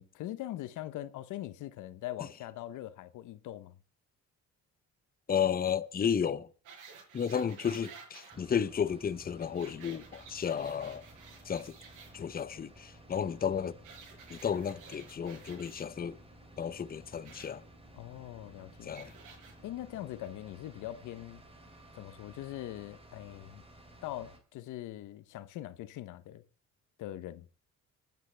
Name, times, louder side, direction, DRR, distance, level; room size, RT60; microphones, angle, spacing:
voice 1, 0.0-3.8 17.9-18.9 19.6-21.4 21.9-23.6 24.0-26.4 27.0-27.5, left 14 dB, 85° left, 0.8 m, -42 dB
voice 2, 5.3-6.5 7.1-11.1 11.5-11.7 12.1-13.8 14.3-16.2 16.6-17.6 18.8-19.1, left 7 dB, 30° left, 0.7 m, -33 dB
sound 1, 6.6-8.4 9.4-12.1 13.8-15.8 17.2-17.5 18.9-19.5 20.2-20.3, right 6 dB, 85° right, 5.4 m, -52 dB
sound 2, 8.3-24.4, right 1 dB, 20° right, 2.9 m, -55 dB
26.0 x 9.1 x 3.3 m
cardioid pair, 90°, 30 cm